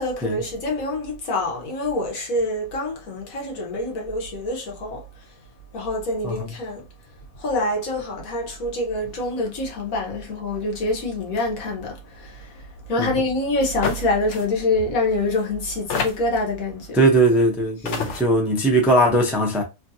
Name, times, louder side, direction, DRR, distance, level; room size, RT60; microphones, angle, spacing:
voice 1, 0.0-5.3 5.7-6.9 7.3-17.0 17.8-18.1, left 2 dB, 80° left, 1.5 m, -26 dB
sound 1, 13.8-14.1 14.3-14.4 15.3-15.4 15.9-16.4 17.4-17.5 17.9-18.2, left 6 dB, 65° left, 0.9 m, -27 dB
voice 2, 16.9-19.6, right 1 dB, ahead, 0.4 m, -19 dB
3.1 x 2.5 x 2.7 m
omnidirectional pair, 1.5 m